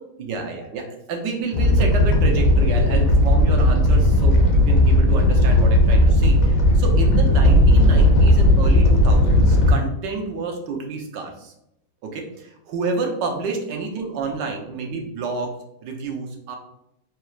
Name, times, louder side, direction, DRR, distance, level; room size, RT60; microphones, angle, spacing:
voice 1, 0.2-11.5 12.0-15.5 15.8-16.6, right 4 dB, 75° right, 2 dB, 1.4 m, -29 dB
Animal, 1.5-9.7, left 1 dB, 75° left, 1.5 m, -15 dB
4.5 x 4.0 x 2.4 m, 0.81 s
omnidirectional pair, 2.0 m